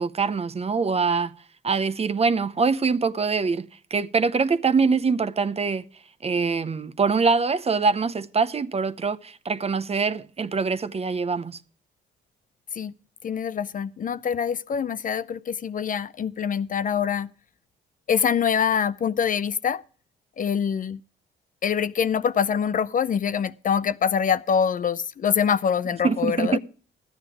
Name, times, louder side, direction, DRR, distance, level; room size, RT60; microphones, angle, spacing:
voice 1, 0.0-1.3 1.6-5.8 6.2-11.6 26.0-26.6, right 5 dB, 30° right, 0.7 m, -24 dB
voice 2, 13.2-17.3 18.1-19.8 20.4-21.0 21.6-26.6, left 7 dB, 40° left, 0.5 m, -24 dB
13.5 x 9.6 x 4.7 m
cardioid pair, 90°, 20 cm